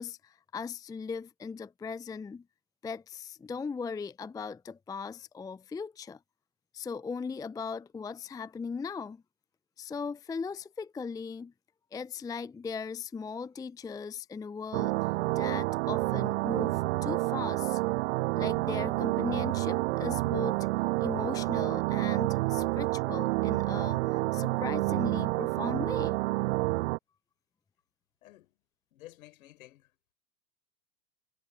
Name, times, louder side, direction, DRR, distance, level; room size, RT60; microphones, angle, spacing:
voice 1, 0.0-2.4 2.8-6.2 6.7-9.2 9.8-11.5 11.9-17.8 18.3-20.7 21.0-26.2, left 5 dB, 10° left, 0.7 m, -38 dB
sound 1, 14.7-27.0, right 22 dB, 45° right, 0.8 m, -29 dB
voice 2, 28.2-28.6 28.9-29.9, left 16 dB, 60° left, 5.8 m, -52 dB
figure-of-eight pair, 95°, 48 cm